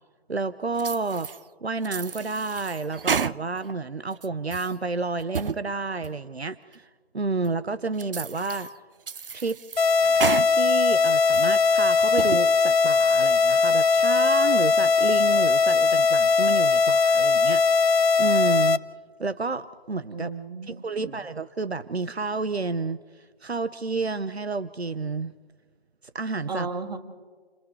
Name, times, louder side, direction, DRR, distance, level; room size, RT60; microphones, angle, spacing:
voice 1, 0.3-1.3 1.6-6.9 7.1-8.7 9.3-9.6 10.5-18.8 19.2-20.3 20.7-25.3 26.1-26.7, right 3 dB, 90° right, 14 dB, 0.8 m, -30 dB
sound 1, 0.8-1.4 1.8-3.7 4.1-4.7 5.2-5.6 6.0-6.1 6.7-6.8 7.5-7.6 8.0-8.7 9.1-10.5 10.9-11.6 12.0-12.4, right 6 dB, 60° right, 0.5 m, -31 dB
sound 2, 9.8-18.8, left 4 dB, 75° left, 0.8 m, -20 dB
voice 2, 20.1-21.1 26.5-27.0, right 4 dB, 40° right, 4 dB, 2.4 m, -34 dB
29.5 x 27.0 x 3.3 m, 1.5 s
figure-of-eight pair, 155°, 31 cm